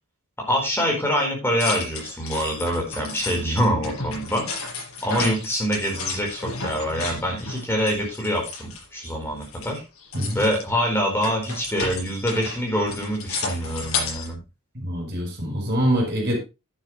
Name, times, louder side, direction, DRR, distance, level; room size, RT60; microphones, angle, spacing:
voice 1, 0.4-4.5 5.0-9.8 10.3-14.4, equal, 10° left, 0 dB, 4.5 m, -25 dB
sound 1, 1.6-9.1 9.4-14.3, left 4 dB, 70° left, 5.6 m, -33 dB
voice 2, 14.7-16.4, equal, 50° right, 2 dB, 5.1 m, -24 dB
11.0 x 9.8 x 3.3 m, 0.27 s
head